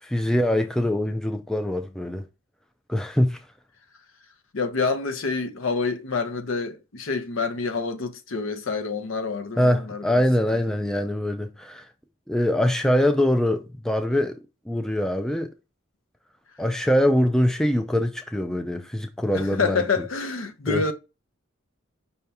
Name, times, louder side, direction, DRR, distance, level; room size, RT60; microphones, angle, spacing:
voice 1, 0.0-2.2 2.9-3.4 9.6-11.9 12.3-14.4 14.7-15.5 16.6-19.8 20.7-20.8, left 1 dB, 5° left, 0.3 m, -23 dB
voice 2, 4.5-10.2 19.3-20.9, left 4 dB, 65° left, 0.7 m, -27 dB
5.6 x 2.8 x 3.4 m
head